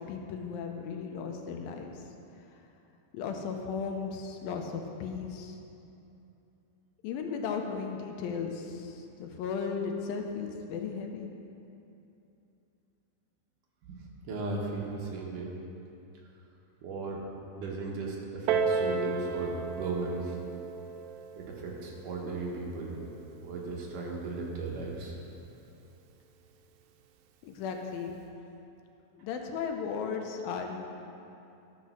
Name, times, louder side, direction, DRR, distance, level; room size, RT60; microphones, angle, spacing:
voice 1, 0.1-1.9 3.1-5.6 7.0-11.3 27.4-28.1 29.2-30.8, left 6 dB, 85° left, 3 dB, 2.6 m, -35 dB
voice 2, 14.3-15.5 16.8-17.2 17.6-20.4 21.3-23.0 23.4-25.1, right 3 dB, 70° right, -2 dB, 2.7 m, -36 dB
Piano, 18.5-23.7 24.5-24.6, right 5 dB, 90° right, 2.4 m, -34 dB
12.5 x 6.1 x 6.2 m, 2.8 s
omnidirectional pair, 4.1 m